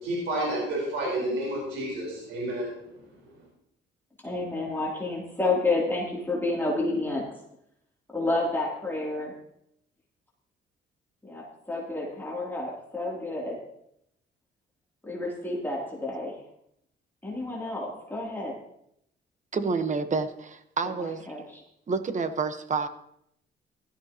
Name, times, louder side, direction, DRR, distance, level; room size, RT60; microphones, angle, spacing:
voice 1, 0.0-2.7, right 1 dB, 90° right, -3 dB, 4.5 m, -30 dB
voice 2, 4.2-7.2 8.1-9.3 11.2-13.6 15.0-16.4 17.2-18.6 21.0-21.6, left 2 dB, 10° left, -4 dB, 3.1 m, -30 dB
voice 3, 19.5-21.2 21.9-22.9, right 4 dB, 40° right, 9 dB, 1.2 m, -28 dB
16.0 x 13.0 x 3.0 m, 0.75 s
cardioid pair, 90°, 20 cm